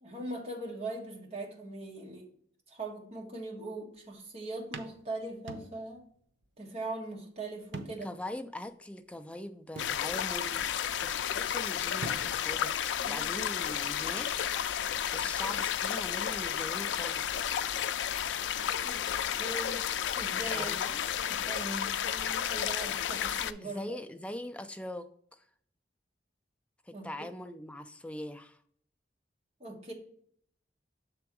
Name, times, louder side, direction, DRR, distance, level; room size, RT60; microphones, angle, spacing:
voice 1, 0.0-2.3 2.7-6.0 6.6-8.1 13.0-13.3 18.8-19.0 19.3-19.8 20.1-20.8 21.2-24.0 26.9-27.3 29.6-29.9, right 2 dB, 35° right, -1 dB, 1.4 m, -40 dB
sound 1, 3.9-4.2 4.7-6.1 6.4-6.5 7.7-8.3 8.7-8.8 9.8-10.5 11.7-11.8 12.0-12.7, right 3 dB, 85° right, 0.7 m, -44 dB
voice 2, 8.0-10.7 11.0-14.3 15.1-17.4 20.5-21.0 23.6-25.4 26.9-28.6, left 1 dB, 5° left, 9 dB, 0.3 m, -42 dB
sound 2, 9.8-23.5, left 9 dB, 85° left, 0.3 m, -32 dB
6.9 x 3.5 x 4.6 m, 0.62 s
head